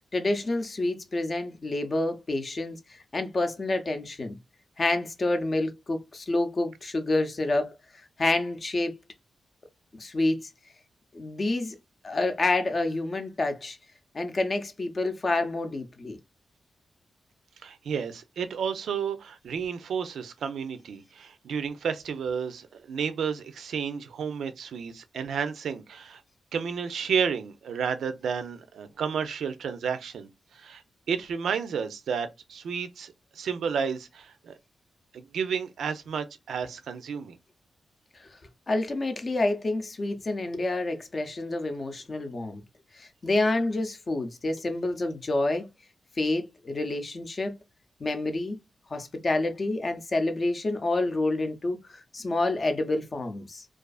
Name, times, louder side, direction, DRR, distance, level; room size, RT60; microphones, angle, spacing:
voice 1, 0.1-4.4 4.8-7.7 8.2-8.9 9.9-10.5 11.1-11.8 12.0-13.8 14.1-16.2 38.7-42.6 42.9-45.7 46.2-47.5 48.0-48.6 48.9-53.7, left 2 dB, 35° left, 0.5 m, -28 dB
voice 2, 17.6-26.2 26.5-30.8 31.1-34.6 35.1-37.4, right 6 dB, 85° right, 0.4 m, -31 dB
2.4 x 2.4 x 2.3 m
wide cardioid pair, 105°, 0 cm